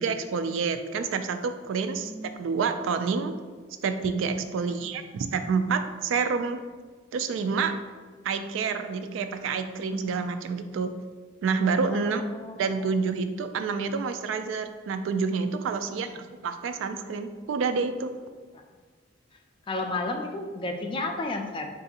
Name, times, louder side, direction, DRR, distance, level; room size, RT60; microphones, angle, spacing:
voice 1, 0.0-2.1 2.4-3.3 3.8-6.6 7.1-7.7 8.2-10.9 11.4-12.2 12.6-18.1, right 5 dB, 80° right, 8 dB, 0.3 m, -28 dB
voice 2, 11.9-12.9 18.5-18.6 19.7-21.7, left 2 dB, 25° left, 4 dB, 0.3 m, -33 dB
4.6 x 2.5 x 2.7 m, 1.4 s
head